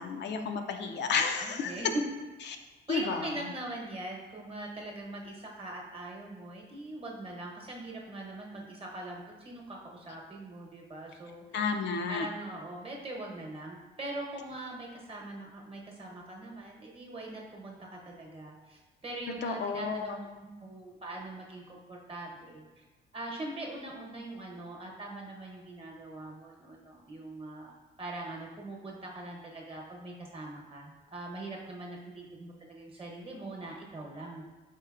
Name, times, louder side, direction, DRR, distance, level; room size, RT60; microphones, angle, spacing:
voice 1, 0.0-1.7 2.9-3.3 11.5-12.3 19.4-20.2, left 5 dB, 60° left, 5 dB, 0.4 m, -31 dB
voice 2, 1.4-2.0 2.9-11.4 12.1-22.8 23.1-27.7 28.0-34.4, right 2 dB, 30° right, -1 dB, 0.9 m, -42 dB
4.4 x 3.9 x 2.4 m, 1.2 s
cardioid pair, 90°, 20 cm